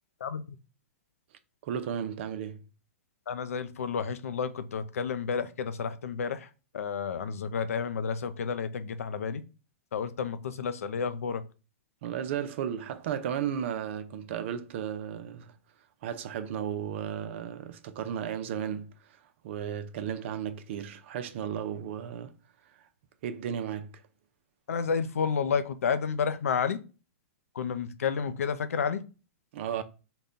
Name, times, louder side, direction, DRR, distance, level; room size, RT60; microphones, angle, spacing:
voice 1, 0.2-0.6 3.3-9.4 9.9-11.4 24.7-26.8 27.5-29.0, left 6 dB, 80° left, 0.4 m, -31 dB
voice 2, 1.6-2.6 12.0-15.5 16.0-19.2 19.4-22.3 23.2-24.0 29.5-29.8, right 9 dB, 55° right, 0.5 m, -34 dB
3.9 x 2.2 x 3.7 m
hypercardioid pair, 130°, 8 cm